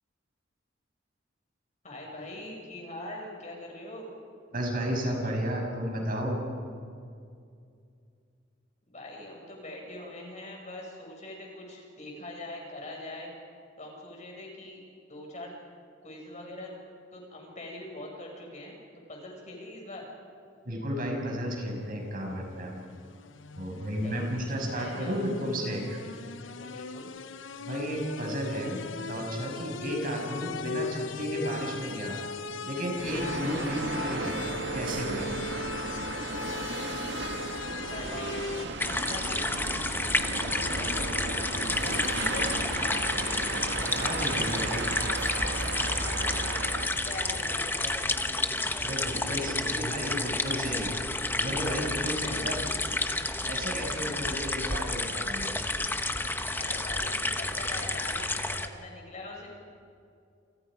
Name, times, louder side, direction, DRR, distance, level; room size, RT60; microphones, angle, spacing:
voice 1, 1.8-4.1 8.9-13.3 13.8-14.8 15.1-15.5 16.0-16.7 17.1-18.8 19.1-20.0 24.0-25.5 26.4-27.1 36.7-37.1 37.5-38.5 38.8-39.6 40.6-41.5 41.8-43.5 45.8-48.4 48.9-49.6 52.1-52.6 56.4-59.5, left 1 dB, 40° left, 0 dB, 6.4 m, -42 dB
voice 2, 4.5-6.4 20.6-22.7 23.5-26.0 27.6-32.2 32.6-35.3 44.0-44.9 48.8-50.9 51.3-52.6 53.4-55.5, equal, 50° right, 0 dB, 6.6 m, -33 dB
sound 1, 21.9-38.7, left 4 dB, 85° left, 0.8 m, -39 dB
sound 2, 33.0-48.1, right 3 dB, 65° right, 2.0 m, -35 dB
sound 3, 38.8-58.7, left 2 dB, 10° left, 1.1 m, -30 dB
29.0 x 29.0 x 5.1 m, 2.4 s
head